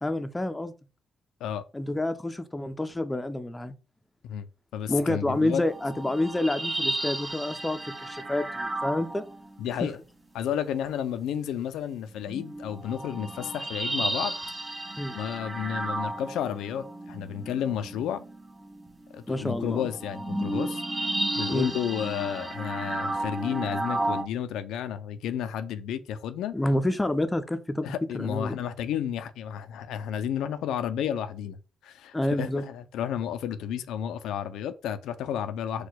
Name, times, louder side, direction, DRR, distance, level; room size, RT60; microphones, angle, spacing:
voice 1, 0.0-0.7 1.7-3.7 4.9-9.2 9.8-9.9 15.0-15.2 19.3-19.9 21.5-21.7 26.5-28.6 32.1-32.6, left 1 dB, 15° left, 0.5 m, -28 dB
voice 2, 4.7-5.6 9.6-10.0 10.3-14.3 15.1-18.2 19.1-26.5 27.8-35.9, left 9 dB, 85° left, 0.4 m, -32 dB
sound 1, 5.3-9.8 10.8-10.9 12.1-24.2, right 1 dB, 15° right, 1.5 m, -33 dB
4.4 x 2.2 x 4.0 m
cardioid pair, 90°, 0 cm